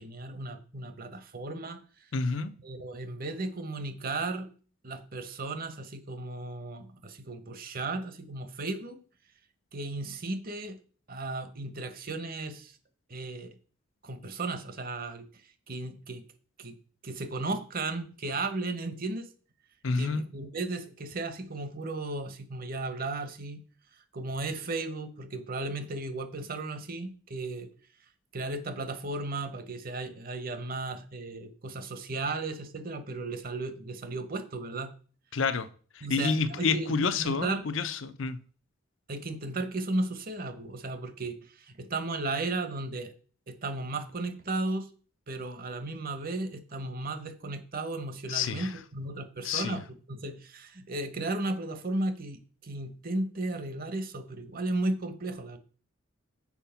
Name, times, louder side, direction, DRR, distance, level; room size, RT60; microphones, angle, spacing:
voice 1, 0.0-1.8 2.6-4.5 4.8-9.0 9.7-10.8 11.1-12.8 13.1-13.5 14.0-15.3 15.7-16.2 16.6-16.8 17.0-19.3 20.0-23.6 24.1-27.7 28.3-34.9 36.0-37.7 39.1-43.1 43.5-44.9 45.3-55.6, right 2 dB, 45° right, 1.0 m, -35 dB
voice 2, 2.1-2.5 19.8-20.2 35.3-35.7 36.0-38.4 48.3-48.7 49.4-49.8, left 4 dB, 65° left, 0.6 m, -29 dB
7.2 x 4.9 x 5.7 m
head